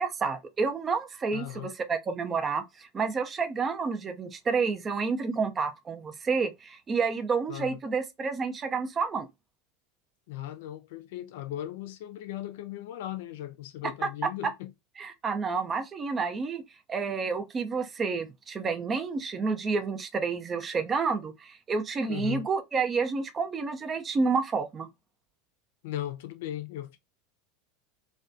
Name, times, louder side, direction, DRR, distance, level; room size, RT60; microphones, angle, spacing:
voice 1, 0.0-9.3 15.0-16.6 16.9-24.9, right 4 dB, 30° right, 0.4 m, -29 dB
voice 2, 1.3-1.7 7.5-7.8 10.3-14.7 22.1-22.5 25.8-27.0, left 13 dB, 70° left, 0.4 m, -37 dB
2.4 x 2.2 x 2.4 m
hypercardioid pair, 85°, 0 cm